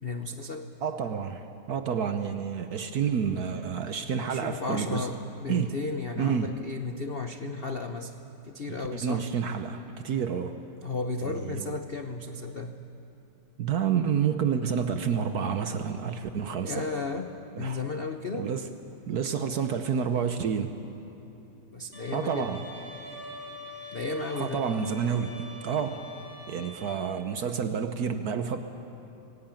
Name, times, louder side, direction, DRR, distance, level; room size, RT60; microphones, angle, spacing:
voice 1, 0.0-0.7 4.3-8.1 8.4-9.3 10.8-12.7 16.6-18.5 21.7-22.5 23.9-24.6, left 3 dB, 85° left, 6 dB, 0.5 m, -34 dB
voice 2, 0.8-5.1 5.5-5.8 6.2-6.6 8.7-10.6 11.2-11.7 13.6-16.9 17.6-17.8 18.3-18.7 19.1-20.7 22.1-22.6 24.4-26.2 26.5-28.6, right 7 dB, 60° right, 8 dB, 1.1 m, -29 dB
Bowed string instrument, 21.9-26.9, equal, 20° right, 4.7 m, -44 dB
21.0 x 17.5 x 9.0 m, 3.0 s
omnidirectional pair, 2.4 m